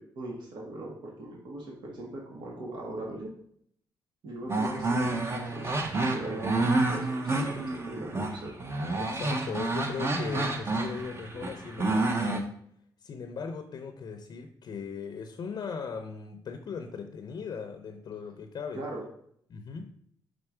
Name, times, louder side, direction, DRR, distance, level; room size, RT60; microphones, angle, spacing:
voice 1, 0.0-3.3 4.2-5.8 6.1-6.6 6.9-8.6 18.7-19.0, right 1 dB, 75° right, -2 dB, 1.6 m, -39 dB
sound 1, 4.5-12.4, right 2 dB, 35° right, 0.9 m, -29 dB
voice 2, 9.0-12.5 13.0-18.8 19.5-20.0, left 6 dB, 60° left, 6 dB, 0.6 m, -38 dB
5.0 x 4.4 x 4.9 m, 0.66 s
cardioid pair, 115°, 8 cm